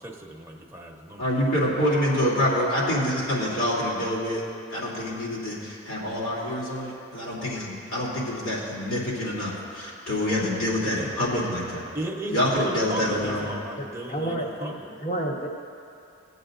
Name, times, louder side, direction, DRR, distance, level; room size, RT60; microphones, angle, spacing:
voice 1, 0.0-1.2 11.9-14.9, right 1 dB, 10° right, -2 dB, 1.0 m, -35 dB
voice 2, 1.2-4.4 4.7-11.8 12.3-13.5, left 1 dB, 75° left, -6 dB, 3.0 m, -26 dB
voice 3, 13.8-14.7 15.0-15.5, right 1 dB, 35° left, -1 dB, 1.2 m, -30 dB
21.5 x 8.0 x 2.6 m, 2.4 s
head